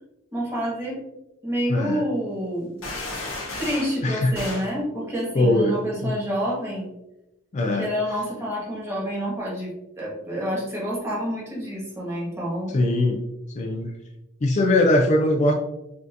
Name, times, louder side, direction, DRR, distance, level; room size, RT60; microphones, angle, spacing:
voice 1, 0.3-1.0 1.4-2.7 3.6-6.9 7.7-9.7 10.0-12.7, equal, 15° right, -5 dB, 1.4 m, -28 dB
voice 2, 1.7-2.0 4.0-4.3 5.4-5.8 6.0-6.1 7.5-7.9 12.7-13.2 13.5-13.9 14.4-15.5, left 1 dB, 35° left, 2 dB, 0.4 m, -20 dB
sound 1, 2.8-4.0 4.3-4.7, left 2 dB, 85° left, 1.4 m, -33 dB
5.5 x 2.7 x 2.5 m, 0.91 s
head